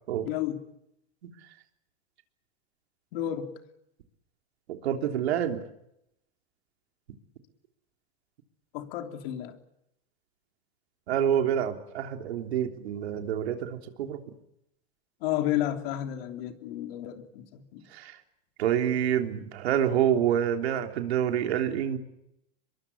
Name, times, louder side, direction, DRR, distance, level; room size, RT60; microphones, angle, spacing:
voice 1, 0.2-0.6 3.1-3.6 8.7-9.6 15.2-17.8, left 12 dB, 65° left, 3.5 m, -32 dB
voice 2, 4.7-5.6 11.1-14.2 17.9-18.2 18.6-22.0, right 9 dB, 85° right, 3.4 m, -27 dB
25.0 x 22.0 x 8.5 m
supercardioid pair, 120°, 31 cm